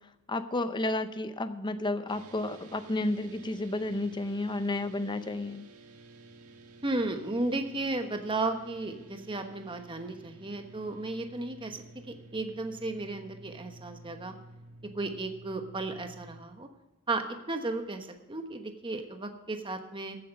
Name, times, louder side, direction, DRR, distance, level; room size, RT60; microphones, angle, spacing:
voice 1, 0.3-5.6, left 2 dB, 20° left, 10 dB, 0.7 m, -31 dB
sound 1, 2.1-16.4, right 2 dB, 85° right, 1.5 m, -52 dB
voice 2, 6.8-14.3 14.8-16.7 17.1-20.2, right 2 dB, 20° right, 6 dB, 1.2 m, -34 dB
15.0 x 8.7 x 5.4 m, 1.0 s
head